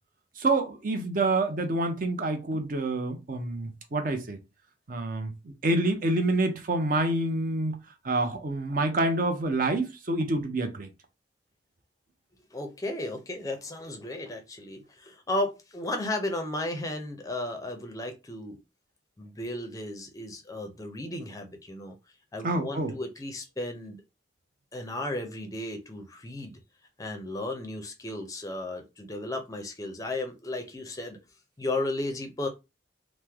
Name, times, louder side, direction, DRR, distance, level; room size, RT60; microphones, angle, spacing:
voice 1, 0.4-4.4 4.9-7.8 8.0-10.9 22.4-22.9, right 2 dB, 45° right, 0.5 m, -27 dB
voice 2, 12.5-18.6 19.2-22.0 22.3-24.0 24.7-26.5 27.0-31.2 31.6-32.5, left 1 dB, 15° left, 0.5 m, -34 dB
3.1 x 2.0 x 3.4 m
head